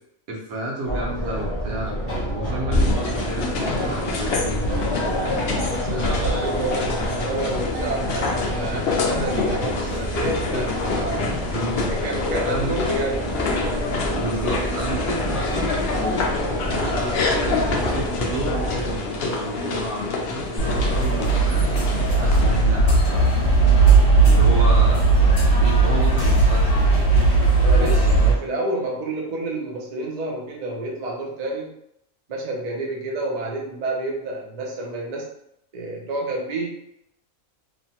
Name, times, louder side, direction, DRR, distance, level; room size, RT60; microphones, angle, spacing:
voice 1, 0.3-2.0 2.3-5.0 5.9-6.3 11.5-11.9 12.4-12.7 13.9-16.1 16.6-17.3 17.6-21.7 22.1-23.5 24.2-25.1 25.5-27.1, right 1 dB, 80° right, -3 dB, 1.3 m, -31 dB
sound 1, 0.9-19.0, equal, 20° left, 0.4 m, -28 dB
sound 2, 2.7-22.6, left 3 dB, 65° left, 0.6 m, -27 dB
voice 2, 5.7-11.3 11.9-13.3 24.7-24.9 27.6-31.7 32.3-35.3 35.7-36.7, right 2 dB, 50° right, -2 dB, 0.5 m, -29 dB
sound 3, 20.6-28.3, right 3 dB, 50° left, 1.1 m, -17 dB
3.1 x 2.1 x 2.8 m, 0.76 s
omnidirectional pair, 1.5 m